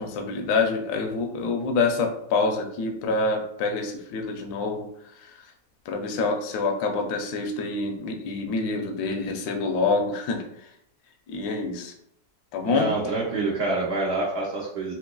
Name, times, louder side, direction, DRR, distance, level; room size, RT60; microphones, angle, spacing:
voice 1, 0.0-4.9 5.1-5.5 5.9-10.7 11.3-11.9 12.5-12.9, left 3 dB, 70° left, 3 dB, 1.0 m, -26 dB
voice 2, 12.7-14.9, right 2 dB, 80° right, -3 dB, 0.5 m, -27 dB
3.9 x 2.9 x 2.2 m, 0.74 s
omnidirectional pair, 2.0 m